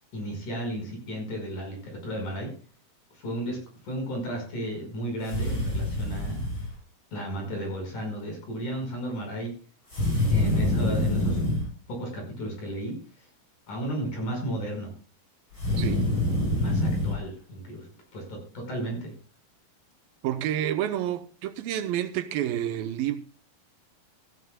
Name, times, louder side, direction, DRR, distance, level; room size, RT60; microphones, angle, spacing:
voice 1, 0.1-2.5 3.2-3.6 3.8-6.5 7.1-9.5 10.3-11.4 11.9-12.9 13.7-14.9 16.6-17.9 18.1-19.1, right 1 dB, 55° left, 6.7 m, -33 dB
sound 1, 5.2-6.7 9.9-11.7 15.5-17.2, left 1 dB, 30° left, 7.7 m, -26 dB
voice 2, 20.2-23.2, right 11 dB, 80° right, 2.6 m, -29 dB
16.0 x 14.5 x 2.3 m
omnidirectional pair, 4.2 m